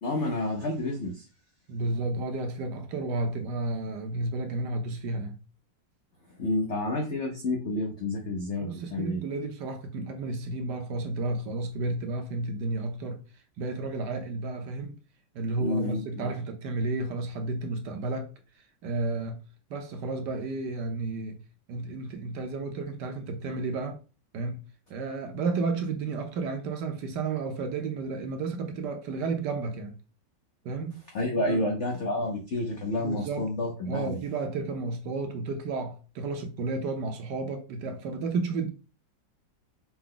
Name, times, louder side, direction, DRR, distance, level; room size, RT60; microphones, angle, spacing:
voice 1, 0.0-1.3 6.4-9.2 15.6-16.3 31.1-34.2, left 2 dB, 70° left, 0.6 m, -29 dB
voice 2, 1.7-5.4 8.6-13.2 13.6-15.0 15.3-19.4 19.7-21.4 21.7-24.0 24.3-24.6 24.9-30.0 30.6-31.0 31.5-31.7 33.0-33.5 33.9-38.7, right 3 dB, 70° right, 1.2 m, -32 dB
5.8 x 2.1 x 3.8 m
omnidirectional pair, 2.1 m